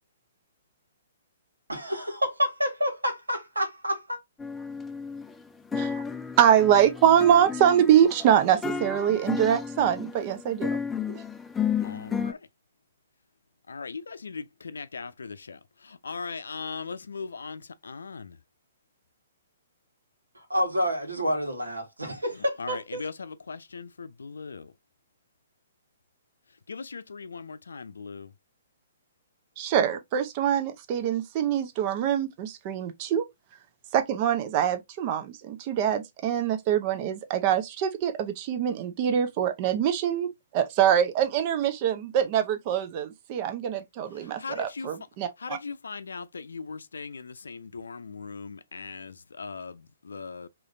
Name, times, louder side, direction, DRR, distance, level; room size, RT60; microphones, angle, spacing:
voice 1, 1.7-4.2 20.4-23.0, equal, 85° right, 1.6 m, -28 dB
sound 1, 4.4-5.4 5.7-12.3, left 6 dB, 10° left, 0.4 m, -33 dB
voice 2, 6.4-10.8 11.1-11.2 29.6-33.3 33.9-45.6, right 9 dB, 35° right, 0.7 m, -24 dB
voice 3, 11.8-12.5 13.7-18.4 22.4-24.7 26.7-28.3 44.1-44.9 45.4-50.5, left 5 dB, 70° left, 0.5 m, -39 dB
4.9 x 3.1 x 2.6 m
figure-of-eight pair, 125°, 0 cm